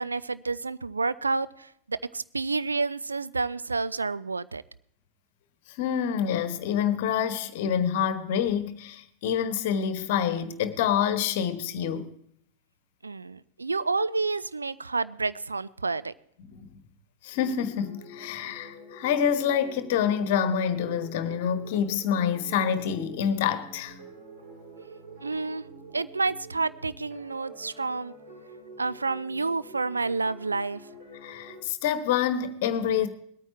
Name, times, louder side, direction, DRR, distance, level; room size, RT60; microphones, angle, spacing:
voice 1, 0.0-4.6 13.0-16.1 25.2-25.7 25.9-28.1 28.8-30.9, right 3 dB, 80° right, 0.4 m, -29 dB
voice 2, 5.7-12.1 16.5-16.7 17.2-24.0 31.2-33.1, left 8 dB, 50° left, 1.2 m, -27 dB
sound 1, 17.3-31.6, right 2 dB, 55° right, 7.4 m, -47 dB
20.5 x 9.1 x 4.3 m
figure-of-eight pair, 90°, 0 cm